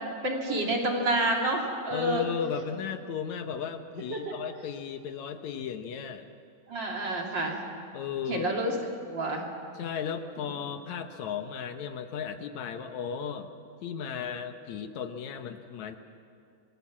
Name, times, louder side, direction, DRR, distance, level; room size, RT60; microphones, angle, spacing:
voice 1, 0.2-2.3 4.1-4.3 6.7-7.6 8.3-8.7 9.0-9.4 10.4-10.5, right 1 dB, 40° right, 0 dB, 3.2 m, -28 dB
voice 2, 1.9-6.3 7.9-8.5 9.8-13.5 13.8-16.0, left 7 dB, 75° left, 7 dB, 2.3 m, -35 dB
26.5 x 19.5 x 7.4 m, 2.4 s
omnidirectional pair, 3.3 m